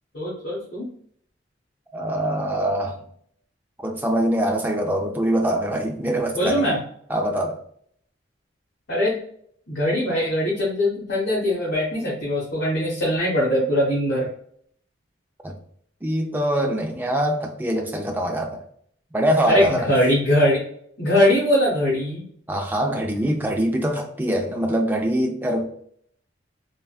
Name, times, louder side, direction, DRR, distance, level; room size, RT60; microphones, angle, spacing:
voice 1, 0.1-0.9 6.3-6.8 8.9-9.1 9.7-14.3 19.5-20.6 21.0-22.2, left 1 dB, 70° left, 1.2 m, -21 dB
voice 2, 1.9-3.0 3.8-6.7 7.1-7.6 15.4-15.6 16.0-18.6 19.1-19.9 22.5-25.6, right 1 dB, 10° right, 0.4 m, -23 dB
3.5 x 2.1 x 2.3 m
head